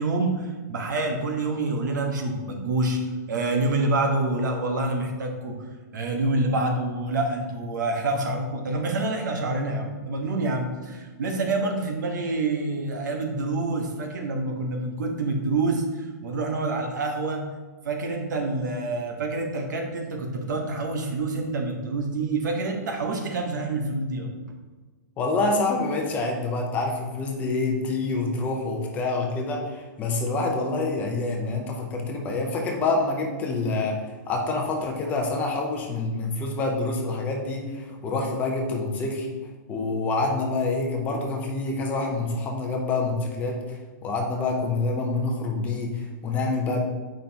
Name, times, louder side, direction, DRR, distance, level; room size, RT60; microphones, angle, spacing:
voice 1, 0.0-3.0 3.3-5.6 5.9-17.4 17.8-24.3, right 2 dB, 75° right, 3 dB, 1.3 m, -27 dB
voice 2, 25.2-39.3 39.7-46.8, left 3 dB, 15° left, 1 dB, 0.6 m, -27 dB
7.6 x 5.2 x 2.9 m, 1.3 s
hypercardioid pair, 170°, 10 cm